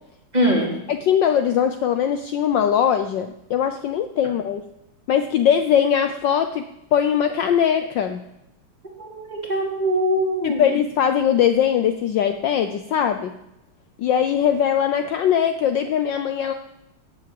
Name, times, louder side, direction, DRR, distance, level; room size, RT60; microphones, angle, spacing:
voice 1, 0.3-0.7 9.0-10.6, equal, 20° right, -1 dB, 3.2 m, -22 dB
voice 2, 0.9-4.6 5.1-6.6 6.9-8.2 10.4-13.3 14.0-16.5, left 9 dB, 65° left, 8 dB, 1.3 m, -21 dB
17.5 x 7.6 x 7.7 m, 0.88 s
omnidirectional pair, 2.4 m